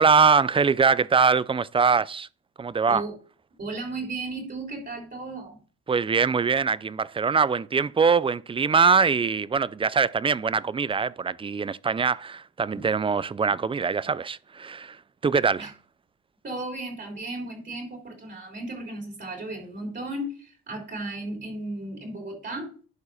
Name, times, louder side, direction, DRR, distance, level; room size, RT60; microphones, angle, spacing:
voice 1, 0.0-2.3 2.6-3.0 5.9-15.0 15.2-15.7, right 5 dB, 20° right, 0.4 m, -23 dB
voice 2, 3.6-5.6 12.7-12.8 15.6-15.7 16.4-22.7, right 2 dB, 35° right, 3.7 m, -35 dB
11.0 x 4.6 x 4.9 m
cardioid pair, 90°, 30 cm